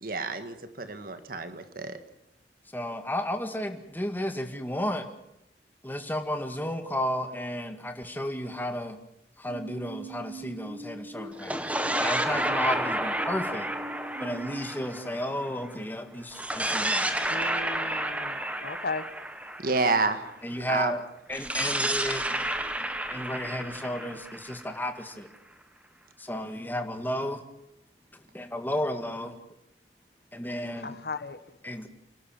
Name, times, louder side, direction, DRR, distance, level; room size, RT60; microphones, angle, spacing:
voice 1, 0.0-2.0 19.6-20.2 20.7-20.9, right 3 dB, 55° right, 9 dB, 1.8 m, -28 dB
voice 2, 2.7-5.1 5.8-9.0 9.4-11.7 12.0-13.7 14.2-17.2 20.4-21.0 21.3-22.2 23.1-25.3 26.2-27.4 28.3-29.4 30.3-31.0 31.6-31.9, left 1 dB, 10° left, 6 dB, 1.9 m, -33 dB
sound 1, 9.5-14.6, right 3 dB, 35° right, 6.7 m, -43 dB
sound 2, 11.3-15.7 16.3-20.3 21.3-25.1, right 1 dB, 10° right, 1.6 m, -31 dB
voice 3, 17.3-19.1 30.8-31.6, left 3 dB, 60° left, 13 dB, 1.3 m, -36 dB
29.0 x 12.0 x 8.9 m, 0.83 s
head